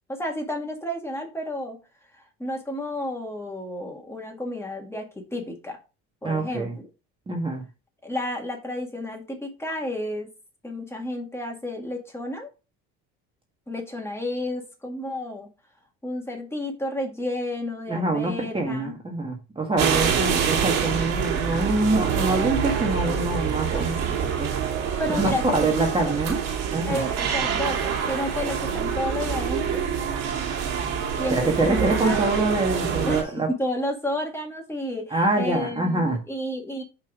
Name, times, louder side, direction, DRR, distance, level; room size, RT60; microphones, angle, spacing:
voice 1, 0.1-1.8 2.1-5.8 6.2-6.9 8.0-10.3 10.6-12.5 13.7-15.5 16.0-19.0 19.9-20.2 21.5-21.7 25.0-26.1 26.9-29.8 31.2-32.2 33.1-36.8, left 1 dB, 10° left, 1 dB, 2.0 m, -31 dB
voice 2, 6.2-6.7 7.3-7.6 17.9-24.0 24.4-24.5 25.2-26.4 26.7-27.0 31.3-33.5 35.1-36.2, right 2 dB, 15° right, 1 dB, 1.6 m, -25 dB
sound 1, 19.8-33.2, right 7 dB, 55° right, 2.1 m, -26 dB
5.4 x 4.9 x 4.9 m, 0.30 s
cardioid pair, 115°, 31 cm